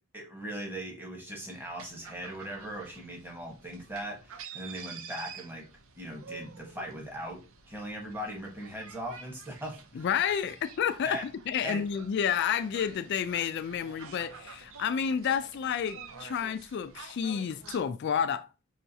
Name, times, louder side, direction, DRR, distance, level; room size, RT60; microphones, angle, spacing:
voice 1, 0.1-5.6 6.0-7.4 7.7-10.1 11.0-11.2 11.6-11.8, equal, 10° right, 1.1 m, -39 dB
sound 1, 1.5-17.8, right 6 dB, 70° right, 0.6 m, -49 dB
voice 2, 9.9-18.5, left 8 dB, 55° left, 0.3 m, -30 dB
5.7 x 3.1 x 2.7 m
head